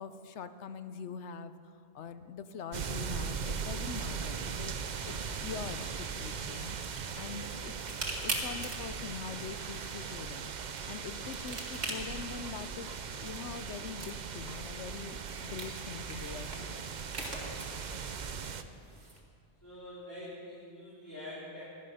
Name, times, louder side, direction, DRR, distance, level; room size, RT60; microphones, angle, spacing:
voice 1, 0.0-1.5 1.9-4.8 5.0-7.7 8.2-10.5 10.9-12.9 13.2-16.8, left 6 dB, 80° left, 11 dB, 1.1 m, -43 dB
sound 1, 2.7-18.6, right 6 dB, 50° right, 0.7 m, -39 dB
sound 2, 6.2-19.2, right 2 dB, 65° right, 2.2 m, -44 dB
voice 2, 19.6-21.6, left 1 dB, 15° left, -10 dB, 3.7 m, -46 dB
18.0 x 12.0 x 5.6 m, 2.4 s
omnidirectional pair, 1.2 m